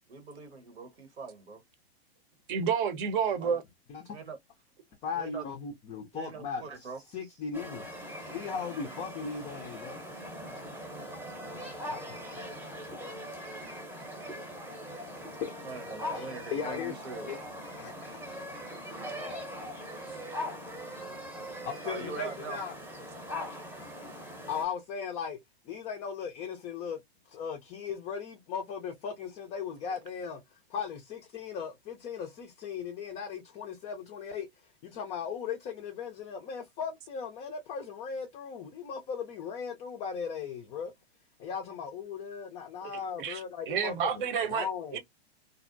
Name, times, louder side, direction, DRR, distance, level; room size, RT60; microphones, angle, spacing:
voice 1, 0.1-1.6 3.2-3.6 4.1-4.4 5.2-5.5 6.1-7.0 15.6-17.3 21.8-22.6, right 4 dB, 80° right, 1.1 m, -42 dB
voice 2, 2.5-3.6 43.2-43.4 43.7-44.7 44.9-45.0, right 7 dB, 55° right, 0.8 m, -29 dB
voice 3, 5.0-7.9 8.3-10.0 11.5-11.8 12.1-12.2 15.4-15.5 16.1-16.9 17.3-17.4 17.8-18.4 21.6-22.8 24.5-25.4 25.7-27.0 27.3-30.4 30.7-40.9 41.4-45.0, left 6 dB, 20° left, 0.3 m, -38 dB
sound 1, 7.5-24.6, equal, 5° right, 0.7 m, -41 dB
2.5 x 2.1 x 2.5 m
hypercardioid pair, 115°, 32 cm